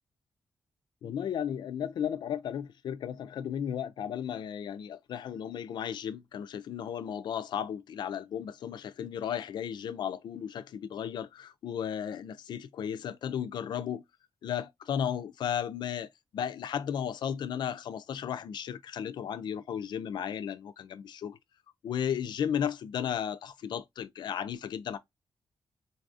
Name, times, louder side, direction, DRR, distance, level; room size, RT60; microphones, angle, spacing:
voice 1, 1.0-14.0 14.4-16.1 16.3-21.4 21.8-25.0, left 9 dB, 70° left, 0.4 m, -34 dB
3.9 x 2.4 x 2.5 m
cardioid pair, 95°, 8 cm